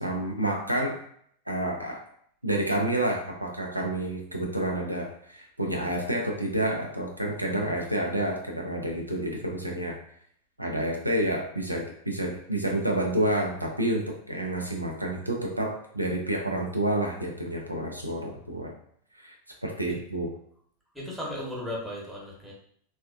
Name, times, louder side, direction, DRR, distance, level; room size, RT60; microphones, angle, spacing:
voice 1, 0.0-1.0 1.5-2.0 2.4-10.0 10.6-18.7 19.2-19.4 19.6-20.3, right 1 dB, 85° right, 1 dB, 0.4 m, -29 dB
voice 2, 20.9-22.5, left 1 dB, ahead, -5 dB, 1.0 m, -35 dB
3.3 x 2.2 x 2.3 m, 0.64 s
figure-of-eight pair, 90°, 0 cm